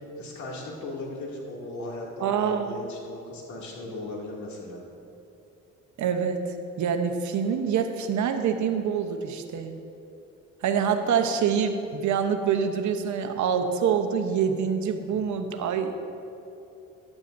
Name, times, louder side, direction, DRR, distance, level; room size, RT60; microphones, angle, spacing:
voice 1, 0.2-4.8, left 2 dB, 70° left, -2 dB, 2.5 m, -37 dB
voice 2, 2.2-2.8 6.0-6.4 6.8-9.7 10.6-15.9, right 7 dB, 70° right, 6 dB, 1.0 m, -26 dB
14.5 x 10.5 x 2.6 m, 2.9 s
cardioid pair, 90°, 30 cm